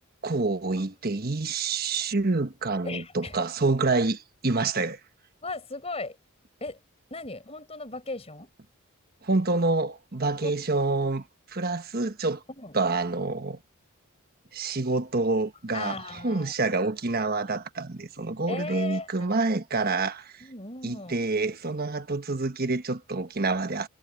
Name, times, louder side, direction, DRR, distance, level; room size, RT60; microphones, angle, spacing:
voice 1, 0.2-5.0 9.2-12.4 12.7-13.6 14.5-16.0 16.2-20.4 20.8-23.9, right 3 dB, 45° right, 1.3 m, -27 dB
voice 2, 2.8-3.4 5.4-6.2 6.6-6.8 7.1-8.5 10.4-10.5 12.5-12.8 15.7-16.6 18.5-19.3 20.4-21.3, left 3 dB, 30° left, 4.9 m, -37 dB
head